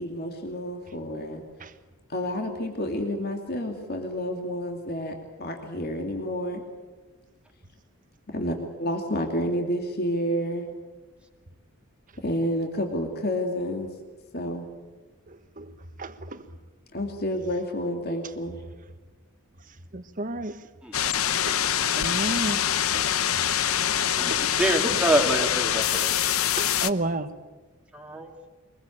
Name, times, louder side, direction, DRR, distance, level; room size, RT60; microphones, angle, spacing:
voice 1, 0.0-1.4 2.1-6.6 8.3-10.6 12.2-13.9 14.3-14.7 16.9-18.6 24.2-24.4, equal, 45° left, 2.7 m, -29 dB
voice 2, 15.3-15.7 16.0-16.5 19.9-20.6 21.4-23.0 23.4-23.7 24.3-24.5 26.6-27.3, right 2 dB, 40° right, 1.3 m, -33 dB
sound 1, 20.9-26.9, left 10 dB, 80° left, 0.9 m, -25 dB
voice 3, 24.6-26.1 27.9-28.3, right 1 dB, 5° right, 2.4 m, -25 dB
23.5 x 22.0 x 8.7 m
head